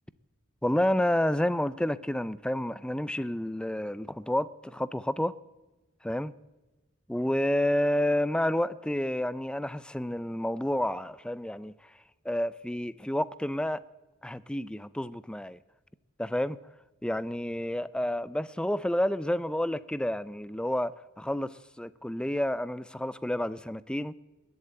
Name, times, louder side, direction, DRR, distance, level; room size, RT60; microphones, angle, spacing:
voice 1, 0.6-5.3 6.0-6.3 7.1-11.7 12.3-13.8 14.2-15.6 16.2-16.6 17.0-20.9 21.2-24.1, left 1 dB, 5° left, 0.4 m, -29 dB
21.0 x 8.0 x 8.8 m
head